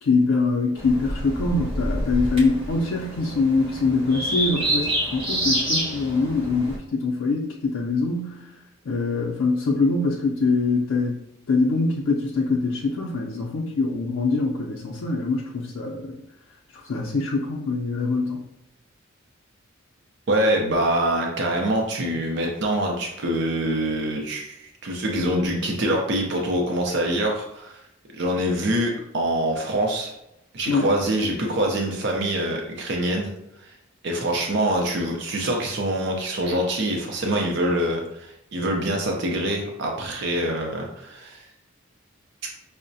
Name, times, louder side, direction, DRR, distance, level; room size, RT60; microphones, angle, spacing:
voice 1, 0.0-8.5 8.9-11.2 11.5-16.2 16.8-18.4 30.7-30.9, left 3 dB, 80° left, -3 dB, 0.4 m, -24 dB
sound 1, 0.8-6.8, equal, 30° right, 0.8 m, -28 dB
voice 2, 20.3-27.8 28.1-30.1 30.5-33.3 33.6-33.7 34.0-41.4, right 1 dB, 60° right, 0 dB, 0.5 m, -25 dB
5.5 x 2.1 x 2.6 m, 0.85 s
head